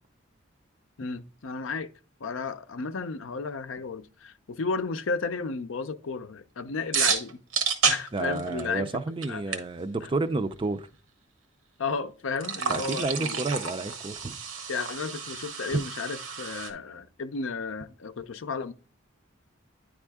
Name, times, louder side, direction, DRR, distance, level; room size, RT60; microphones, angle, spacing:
voice 1, 1.0-1.9 2.2-7.4 7.9-9.0 9.3-9.6 10.0-10.1 11.8-13.4 14.7-18.7, left 4 dB, 75° left, 0.5 m, -33 dB
sound 1, 6.9-8.9 9.2-9.3 9.5-9.6 12.4-16.7, right 6 dB, 85° right, 1.0 m, -30 dB
voice 2, 8.1-10.9 12.7-14.3 15.7-15.8, right 3 dB, 25° right, 0.4 m, -30 dB
9.9 x 3.6 x 3.5 m
head